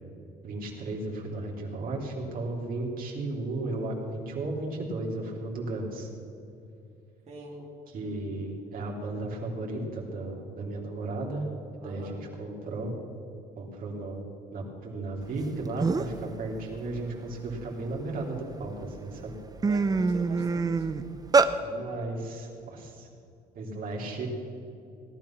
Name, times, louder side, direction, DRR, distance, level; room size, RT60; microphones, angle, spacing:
voice 1, 0.4-6.1 7.9-11.4 11.7-12.9 13.6-14.3 14.5-19.4 21.6-23.1 23.5-24.3, right 2 dB, 55° right, -1 dB, 3.1 m, -34 dB
voice 2, 7.3-7.7 11.8-12.2 19.6-20.9, right 2 dB, 40° right, -4 dB, 2.7 m, -44 dB
sound 1, 15.4-15.5 15.8-16.2 16.7-18.2 18.8-19.0 19.3-21.5, right 4 dB, 20° right, 0.7 m, -25 dB
18.0 x 11.0 x 5.9 m, 2.6 s
cardioid pair, 110°, 17 cm